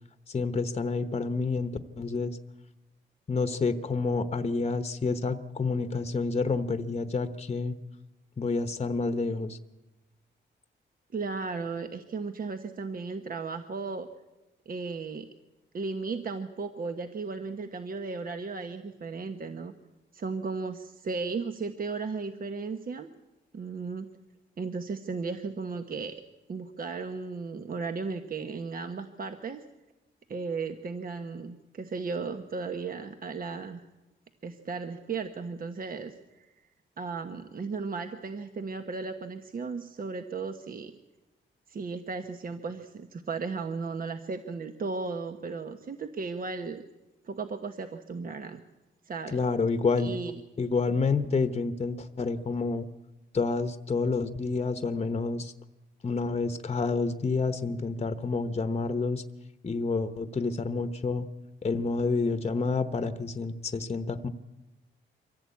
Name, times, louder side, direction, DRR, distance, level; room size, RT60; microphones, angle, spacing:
voice 1, 0.3-2.4 3.3-7.8 8.4-9.6 49.3-50.2 50.6-52.9 53.3-55.5 56.0-59.2 59.6-61.3 61.6-64.3, left 4 dB, 30° left, 10 dB, 1.0 m, -29 dB
voice 2, 11.1-14.1 14.7-15.3 15.7-19.7 20.1-23.1 23.5-24.1 24.6-26.1 26.5-29.6 30.3-33.8 34.4-36.5 37.0-40.9 41.7-46.8 47.2-48.6 49.0-49.4 50.0-50.4, right 4 dB, 50° right, 7 dB, 1.2 m, -35 dB
24.0 x 15.5 x 8.5 m, 1.1 s
cardioid pair, 105°, 19 cm